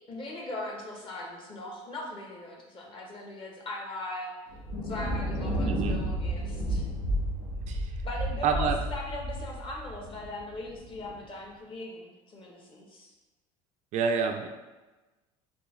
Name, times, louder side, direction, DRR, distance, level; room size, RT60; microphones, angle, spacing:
voice 1, 0.1-4.3 4.8-6.9 8.0-13.1, left 2 dB, 35° left, 0 dB, 0.9 m, -39 dB
Thunder, 4.5-11.1, equal, 85° left, 1.1 m, -32 dB
voice 2, 5.6-6.0 7.7-7.9 8.4-8.8 13.9-14.5, right 6 dB, 55° right, 5 dB, 0.4 m, -28 dB
3.6 x 2.3 x 3.0 m, 1.2 s
supercardioid pair, 90°, 15 cm